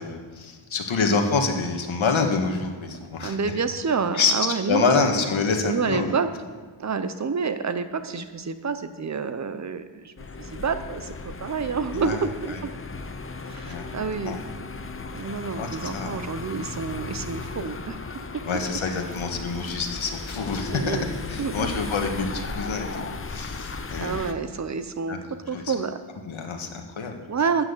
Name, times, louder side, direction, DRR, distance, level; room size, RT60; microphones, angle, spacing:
voice 1, 0.0-3.4 4.1-4.3 4.7-6.2 11.9-12.6 13.6-13.9 14.2-14.4 15.6-16.2 18.5-21.0 21.3-24.4 25.1-25.2 25.5-25.7 26.3-27.2, left 4 dB, 75° left, 3 dB, 1.8 m, -27 dB
voice 2, 3.2-5.0 5.7-6.3 6.8-12.7 13.5-14.4 15.1-18.3 20.7-21.0 21.4-21.7 24.0-25.2 25.5-26.0 27.3-27.6, right 5 dB, 35° right, 10 dB, 0.8 m, -28 dB
sound 1, 10.2-24.3, left 4 dB, 25° left, 0.7 m, -36 dB
13.0 x 6.2 x 8.4 m, 1.5 s
wide cardioid pair, 140°, 48 cm